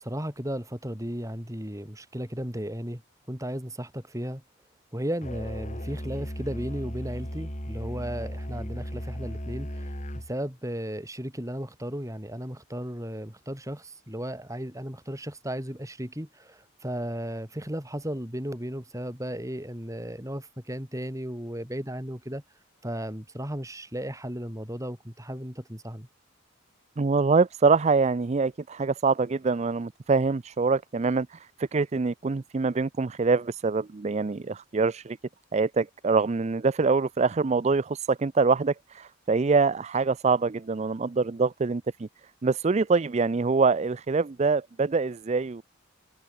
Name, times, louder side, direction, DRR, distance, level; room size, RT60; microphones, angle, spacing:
voice 1, 0.0-3.0 3.3-4.4 4.9-22.4 22.8-26.1, equal, 15° right, 4.5 m, -35 dB
Musical instrument, 5.2-10.3, equal, 35° left, 6.8 m, -36 dB
voice 2, 27.0-35.2 35.5-42.1 42.4-45.6, right 4 dB, 35° right, 0.4 m, -25 dB
head